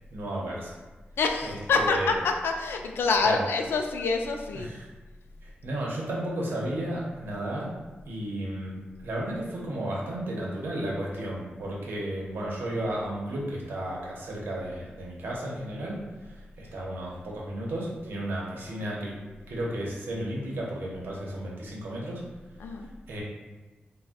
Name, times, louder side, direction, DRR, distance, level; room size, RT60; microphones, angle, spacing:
voice 1, 0.1-0.7 1.4-2.1 3.2-3.4 4.5-4.9 5.4-7.7 8.1-8.8 9.0-19.2 19.5-22.2 23.1-23.2, right 1 dB, 75° right, -4 dB, 0.7 m, -33 dB
voice 2, 1.2-4.7 22.6-22.9, left 4 dB, 90° left, 3 dB, 0.3 m, -26 dB
2.5 x 2.1 x 3.5 m, 1.2 s
wide cardioid pair, 180°, 4 cm